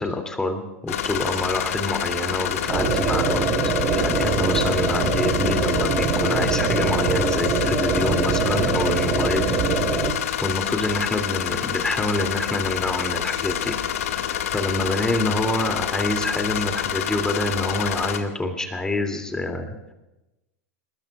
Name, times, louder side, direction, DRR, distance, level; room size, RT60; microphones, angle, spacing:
voice 1, 0.0-9.6 9.8-19.9, left 2 dB, 10° left, 4 dB, 2.7 m, -27 dB
sound 1, 0.9-18.2, left 10 dB, 70° left, 1.9 m, -27 dB
sound 2, 2.7-10.1, right 4 dB, 30° right, 6.2 m, -23 dB
26.0 x 21.0 x 2.4 m, 0.98 s
hypercardioid pair, 110°, 8 cm